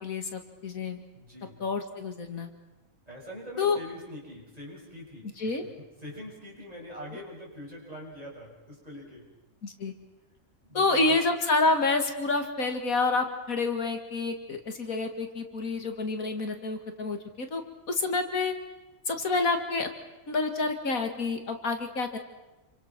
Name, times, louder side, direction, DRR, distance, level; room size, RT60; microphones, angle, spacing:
voice 1, 0.0-1.0 1.6-2.5 3.6-3.8 5.4-5.6 9.6-9.9 10.7-17.6 17.9-18.5 19.1-19.9 20.3-22.2, left 3 dB, 80° left, 6 dB, 2.5 m, -28 dB
voice 2, 1.1-1.6 3.1-5.7 6.0-9.3 10.6-11.2, equal, 25° right, -3 dB, 6.7 m, -44 dB
28.0 x 25.0 x 6.1 m, 1.0 s
omnidirectional pair, 1.5 m